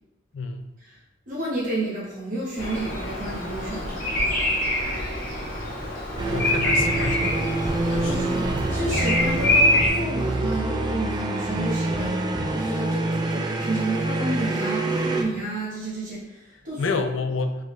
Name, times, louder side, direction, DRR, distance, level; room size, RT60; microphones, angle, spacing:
voice 1, 0.3-0.7 6.3-7.4 7.8-8.2 16.8-17.6, left 3 dB, 85° left, 8 dB, 0.4 m, -29 dB
voice 2, 1.3-4.3 8.0-17.0, right 1 dB, 45° right, -7 dB, 0.9 m, -31 dB
Bird vocalization bird call bird song, 2.6-9.9, left 1 dB, 50° left, 1.2 m, -25 dB
sound 1, 6.2-15.2, right 2 dB, 20° right, 0.3 m, -26 dB
3.8 x 3.4 x 3.1 m, 1.0 s
head